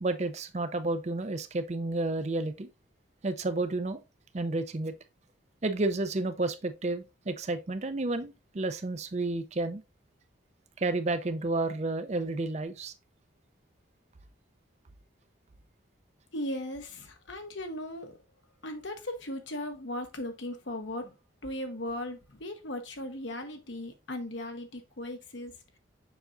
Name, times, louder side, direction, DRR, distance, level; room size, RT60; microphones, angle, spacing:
voice 1, 0.0-2.7 3.2-4.0 4.3-4.9 5.6-9.8 10.8-12.9, right 2 dB, 35° right, 0.5 m, -31 dB
voice 2, 16.3-18.2 18.6-21.2 21.4-25.8, left 1 dB, 75° left, 1.2 m, -37 dB
7.0 x 5.6 x 2.5 m
head